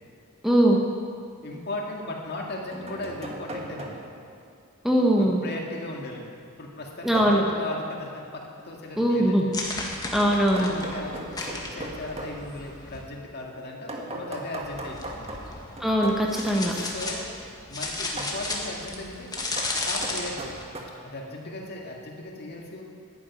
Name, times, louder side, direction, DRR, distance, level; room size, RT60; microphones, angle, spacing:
voice 1, 0.4-0.8 4.8-5.4 7.0-7.4 9.0-9.4 10.1-10.7 15.8-16.7, right 1 dB, ahead, -2 dB, 1.2 m, -21 dB
sound 1, 0.9-1.0 2.2-4.3 7.1-7.6 10.3-12.4 13.9-16.3 18.2-18.4 19.4-20.8, right 1 dB, 30° right, 1.6 m, -38 dB
voice 2, 1.4-4.0 5.0-6.3 6.6-9.4 10.6-15.4 16.6-17.3 17.7-19.3 19.7-20.5 21.0-22.8, left 2 dB, 50° left, 0 dB, 2.0 m, -37 dB
sound 2, 9.5-13.0 14.6-20.6, left 2 dB, 20° left, 1.7 m, -34 dB
11.5 x 10.0 x 9.1 m, 2.3 s
head